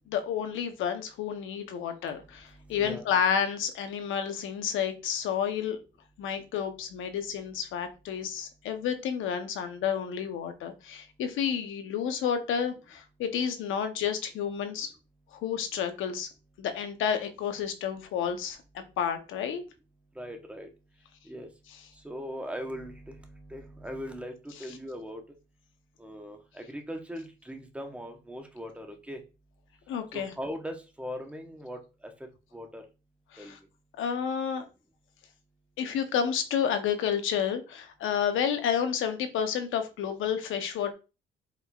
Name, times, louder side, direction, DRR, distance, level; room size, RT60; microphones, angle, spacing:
voice 1, 0.1-5.8 6.2-14.9 15.3-16.3 16.6-19.6 29.9-30.3 33.3-33.6 34.0-34.6 35.8-40.9, left 8 dB, 85° left, 8 dB, 0.8 m, -30 dB
voice 2, 2.6-3.1 20.2-20.7 21.2-21.5 22.0-25.2 26.0-29.2 30.1-32.1 32.5-32.8 33.4-33.5, equal, 5° right, 3 dB, 0.9 m, -40 dB
4.7 x 3.7 x 2.3 m, 0.30 s
cardioid pair, 90°, 20 cm